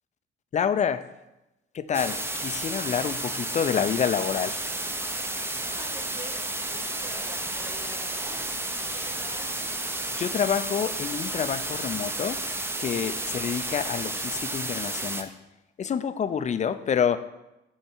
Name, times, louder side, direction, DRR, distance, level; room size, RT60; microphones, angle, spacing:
voice 1, 0.5-1.0 1.7-4.6 10.1-12.4 12.8-15.3 15.8-17.2, left 7 dB, 35° left, 12 dB, 0.4 m, -27 dB
sound 1, 1.9-15.2, right 2 dB, 10° right, 0.6 m, -32 dB
voice 2, 5.6-8.4 8.9-9.6, right 1 dB, 45° right, -4 dB, 2.3 m, -45 dB
8.7 x 3.6 x 4.4 m, 0.95 s
cardioid pair, 90°, 20 cm